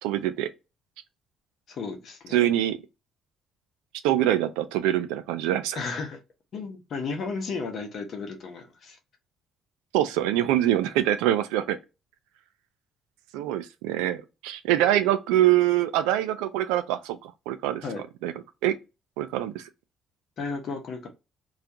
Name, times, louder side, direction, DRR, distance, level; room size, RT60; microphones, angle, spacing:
voice 1, 0.0-0.5 2.3-2.8 4.0-5.8 9.9-11.8 13.3-17.8 18.2-18.3 18.6-18.8 19.2-19.6, right 13 dB, 90° right, 0.3 m, -24 dB
voice 2, 1.7-2.4 5.7-6.2 6.5-9.0 17.8-18.0 20.4-21.1, left 4 dB, 60° left, 0.9 m, -34 dB
2.4 x 2.2 x 2.8 m
supercardioid pair, 65°, 0 cm